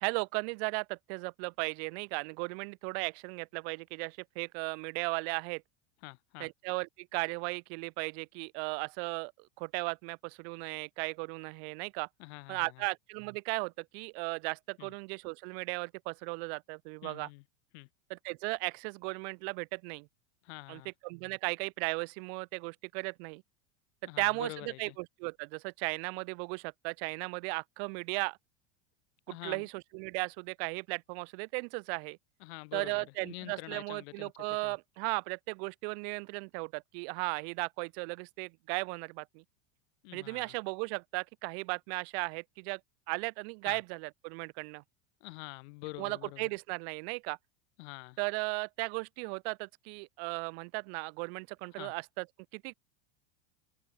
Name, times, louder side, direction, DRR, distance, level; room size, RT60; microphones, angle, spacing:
voice 1, 0.0-5.6 6.4-12.1 12.5-17.3 18.1-20.1 20.7-23.4 24.2-28.4 29.3-32.2 32.7-39.4 40.1-42.8 43.1-44.8 46.0-47.4 48.2-52.3 52.5-52.7, right 35 dB, 60° right, 1.4 m, -36 dB
voice 2, 6.0-6.5 12.2-12.8 14.8-14.9 17.0-17.4 17.7-17.9 20.4-20.9 24.0-25.0 29.3-29.7 32.4-34.3 34.6-34.8 40.0-40.5 43.6-43.8 45.2-46.5 47.8-48.2 51.8-51.9, left 26 dB, 65° left, 6.7 m, -46 dB
supercardioid pair, 130°, 35 cm